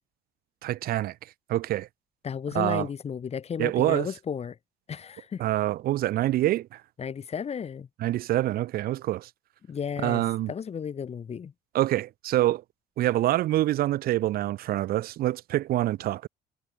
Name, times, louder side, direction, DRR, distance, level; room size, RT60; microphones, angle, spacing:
voice 1, 0.6-1.1 1.5-1.9 2.5-2.9 3.6-4.1 5.4-6.8 8.0-9.3 10.0-10.5 11.7-12.6 13.0-16.3, right 14 dB, 60° right, 0.6 m, -26 dB
voice 2, 2.2-4.6 4.9-5.4 7.0-7.9 9.7-11.5, left 7 dB, 40° left, 2.5 m, -33 dB
cardioid pair, 110°, 17 cm